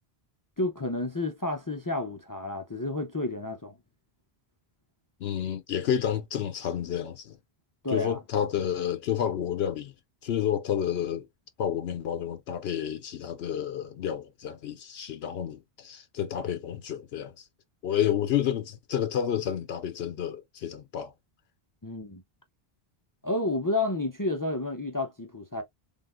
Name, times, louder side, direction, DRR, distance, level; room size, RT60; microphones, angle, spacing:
voice 1, 0.6-3.7 7.8-8.2 21.8-22.2 23.2-25.6, left 2 dB, 25° left, 0.5 m, -30 dB
voice 2, 5.2-7.4 7.9-9.9 10.2-11.3 11.6-17.5 17.8-21.1, left 9 dB, 75° left, 0.8 m, -30 dB
3.8 x 3.6 x 2.5 m
omnidirectional pair, 1.1 m